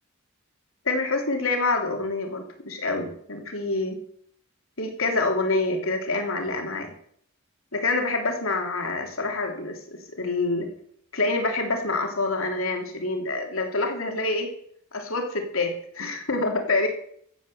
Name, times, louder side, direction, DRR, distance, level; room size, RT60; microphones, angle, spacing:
voice 1, 0.8-4.0 4.8-6.9 7.7-10.7 11.1-14.5 14.9-16.9, left 3 dB, 80° left, 3 dB, 3.3 m, -26 dB
14.5 x 8.8 x 7.7 m, 0.65 s
head